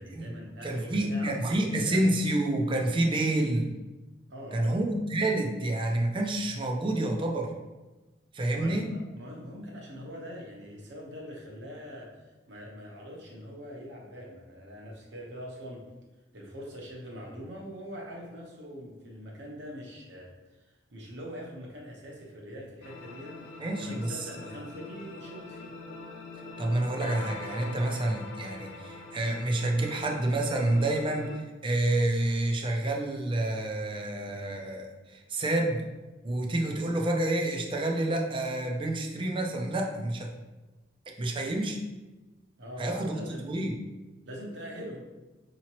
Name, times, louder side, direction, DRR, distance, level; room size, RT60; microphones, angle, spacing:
voice 1, 0.0-1.6 1.8-2.0 4.3-4.8 8.5-15.8 16.3-20.3 20.9-25.8 42.6-43.5 44.3-45.0, equal, 75° right, -2 dB, 1.0 m, -43 dB
voice 2, 0.6-3.7 4.5-7.5 8.3-8.9 23.6-24.2 26.6-31.3 31.6-35.8 36.2-40.3 41.2-41.8 42.8-43.8, right 1 dB, 30° right, 1 dB, 0.5 m, -28 dB
sound 1, 22.8-31.4, left 3 dB, 85° left, 0.5 m, -43 dB
4.9 x 2.9 x 2.9 m, 1.1 s
head